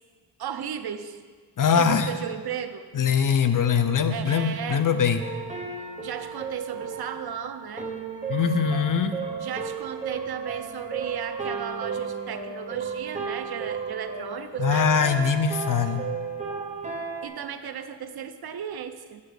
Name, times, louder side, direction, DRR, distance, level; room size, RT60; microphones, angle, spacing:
voice 1, 0.4-1.2 1.7-2.9 4.1-4.9 6.0-7.9 9.4-15.0 17.2-19.2, right 8 dB, 60° right, 9 dB, 0.6 m, -35 dB
voice 2, 1.6-2.1 2.9-5.2 8.3-9.2 14.6-16.1, left 6 dB, 50° left, 9 dB, 0.6 m, -22 dB
sound 1, 5.2-17.3, right 5 dB, 15° right, 1.1 m, -34 dB
8.4 x 7.7 x 4.9 m, 1.5 s
wide cardioid pair, 115°, 42 cm